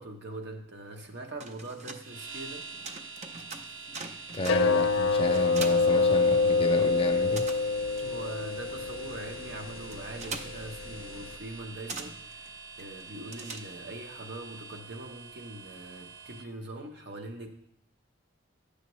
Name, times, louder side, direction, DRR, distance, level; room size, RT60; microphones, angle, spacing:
voice 1, 0.0-2.7 8.0-12.5 12.8-17.5, right 2 dB, 55° right, 3 dB, 0.9 m, -42 dB
sound 1, 1.2-6.8 7.0-14.1, right 3 dB, 35° right, 0.5 m, -44 dB
sound 2, 2.0-16.5, right 4 dB, 85° right, 0.6 m, -45 dB
voice 2, 4.3-7.5, left 2 dB, 30° left, 7 dB, 0.4 m, -32 dB
sound 3, 4.4-11.4, left 3 dB, 90° left, 0.4 m, -27 dB
9.4 x 6.6 x 3.1 m, 0.73 s
head